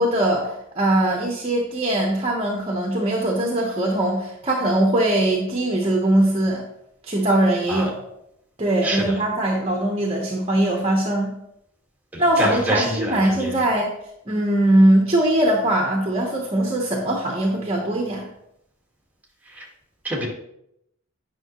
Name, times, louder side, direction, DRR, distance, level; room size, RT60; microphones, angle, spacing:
voice 1, 0.0-6.6 7.0-7.9 8.6-11.3 12.2-13.9 14.3-18.3, right 1 dB, 25° right, 0 dB, 1.0 m, -21 dB
voice 2, 8.8-9.2 12.1-13.6 19.4-19.7 20.0-20.3, right 1 dB, 5° right, -2 dB, 1.7 m, -27 dB
9.7 x 5.9 x 3.0 m, 0.78 s
head